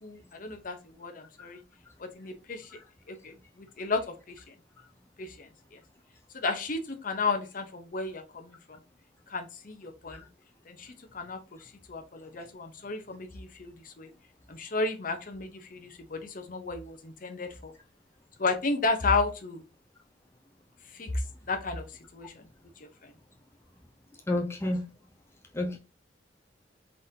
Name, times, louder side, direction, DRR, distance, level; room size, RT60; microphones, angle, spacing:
voice 1, 0.0-1.6 2.0-2.7 3.1-4.5 5.2-5.8 6.3-8.8 9.3-10.2 10.7-14.1 14.5-17.7 18.4-19.6 20.9-21.2 21.5-21.8 22.1-22.5 22.8-23.1, left 3 dB, 45° left, 0.7 m, -33 dB
voice 2, 24.3-24.8 25.5-25.8, left 1 dB, 15° left, 0.6 m, -30 dB
3.9 x 3.7 x 2.7 m
head